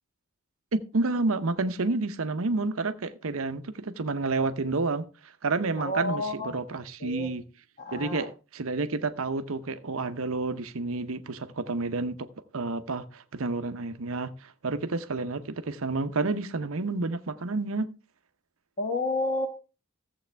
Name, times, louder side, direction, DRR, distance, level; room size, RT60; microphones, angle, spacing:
voice 1, 0.7-7.4 7.9-12.3 12.5-17.9, right 3 dB, 70° right, 0.8 m, -30 dB
voice 2, 5.8-6.6 7.0-7.3 7.8-8.3 18.8-19.5, left 2 dB, 35° left, 1.2 m, -30 dB
14.5 x 7.8 x 3.4 m
head